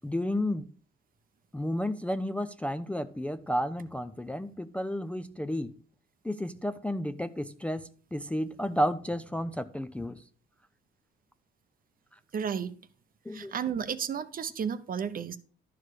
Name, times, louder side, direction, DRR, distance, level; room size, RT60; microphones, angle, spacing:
voice 1, 0.0-0.7 1.5-5.7 6.2-10.2 13.3-13.5, equal, 5° left, 0.4 m, -32 dB
voice 2, 12.3-12.7 13.3-15.4, right 7 dB, 45° right, 0.7 m, -32 dB
11.5 x 4.8 x 4.8 m
cardioid pair, 90°, 20 cm